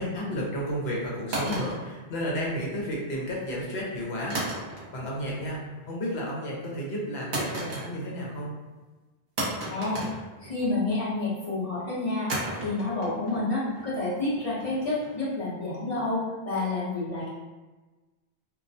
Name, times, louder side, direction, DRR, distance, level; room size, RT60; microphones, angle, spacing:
voice 1, 0.0-4.4 4.9-8.5, equal, 75° left, -4 dB, 0.9 m, -32 dB
sound 1, 1.3-2.7 4.3-5.1 5.5-5.9 7.3-8.3 8.6-8.7 9.4-10.9 12.3-15.3, right 1 dB, 50° right, 0.9 m, -35 dB
voice 2, 9.7-10.0 10.4-12.3 12.6-17.3, left 2 dB, 35° left, -8 dB, 0.7 m, -29 dB
2.3 x 2.1 x 2.6 m, 1.2 s
omnidirectional pair, 1.1 m